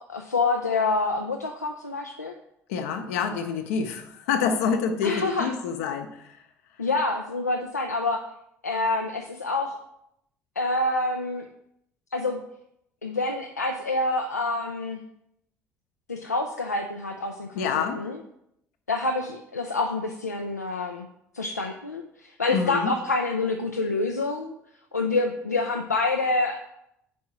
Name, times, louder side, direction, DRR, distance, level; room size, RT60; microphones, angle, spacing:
voice 1, 0.1-2.3 5.0-5.5 6.8-8.2 8.6-9.8 10.6-11.5 12.1-12.4 13.0-15.0 16.1-18.2 18.9-21.1 21.3-24.5 24.9-26.6, left 3 dB, 90° left, 2 dB, 0.3 m, -27 dB
voice 2, 2.7-6.4 17.5-18.0 22.5-22.9, left 6 dB, 70° left, 6 dB, 0.7 m, -27 dB
5.2 x 4.6 x 5.7 m, 0.78 s
figure-of-eight pair, 55°, 8 cm